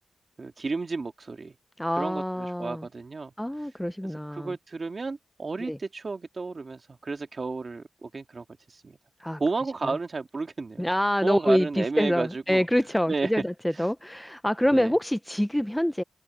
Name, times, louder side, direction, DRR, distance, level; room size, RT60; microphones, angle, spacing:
voice 1, 0.4-1.5 2.0-3.3 4.3-9.0 9.4-10.9 11.2-12.6 13.1-13.3 13.8-13.9 14.7-14.9, right 3 dB, 40° right, 1.9 m, -32 dB
voice 2, 1.8-2.9 3.4-4.6 5.7-5.8 9.2-9.4 9.8-9.9 10.8-16.0, equal, 5° left, 0.5 m, -26 dB
wide cardioid pair, 100°, 0 cm